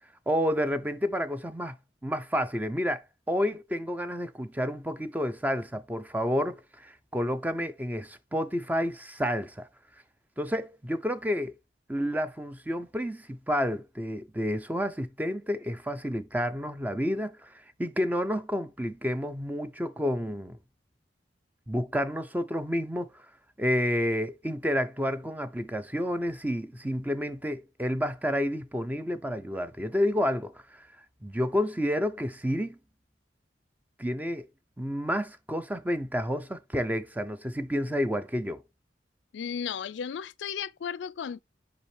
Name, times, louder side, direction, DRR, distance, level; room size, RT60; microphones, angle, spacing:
voice 1, 0.3-1.8 2.0-9.7 10.4-11.6 11.9-20.6 21.7-23.2 23.6-30.9 31.2-32.8 34.0-34.5 34.8-38.6, equal, 10° right, 0.5 m, -30 dB
voice 2, 39.3-41.4, left 7 dB, 85° left, 0.4 m, -34 dB
5.5 x 5.1 x 3.3 m
head